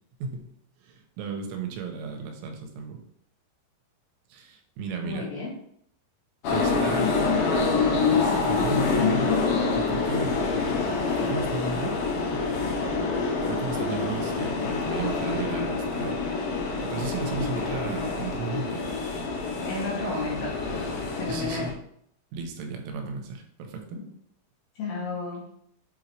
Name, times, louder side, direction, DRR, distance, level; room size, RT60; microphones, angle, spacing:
voice 1, 0.8-3.0 4.3-5.3 6.5-7.2 7.8-9.4 9.7-10.4 11.1-12.4 13.5-18.9 21.2-21.8 22.3-24.0, right 4 dB, 90° right, 4 dB, 3.2 m, -35 dB
voice 2, 5.0-5.5 18.0-18.1 19.7-20.5 21.1-21.7 23.9-24.1 24.8-25.4, left 3 dB, 60° left, -5 dB, 3.0 m, -32 dB
sound 1, 6.4-21.7, left 4 dB, 80° left, 1.9 m, -26 dB
7.7 x 3.8 x 3.2 m, 0.69 s
omnidirectional pair, 5.3 m